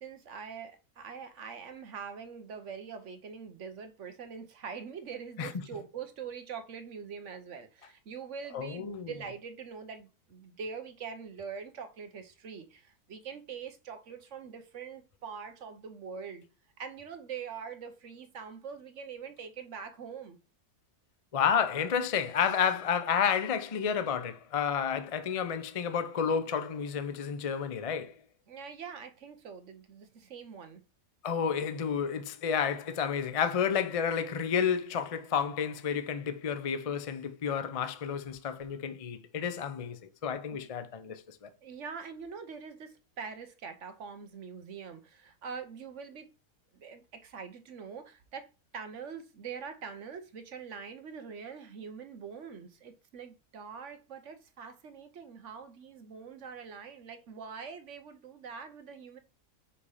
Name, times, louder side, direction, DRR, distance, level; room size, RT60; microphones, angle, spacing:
voice 1, 0.0-16.4 16.8-20.4 28.5-30.8 40.5-40.7 41.6-46.3 46.7-48.5 48.7-59.2, right 6 dB, 55° right, 1.1 m, -44 dB
voice 2, 8.5-9.1 21.3-28.1 31.2-41.5, left 7 dB, 65° left, 0.3 m, -31 dB
5.8 x 4.2 x 4.8 m
omnidirectional pair, 1.7 m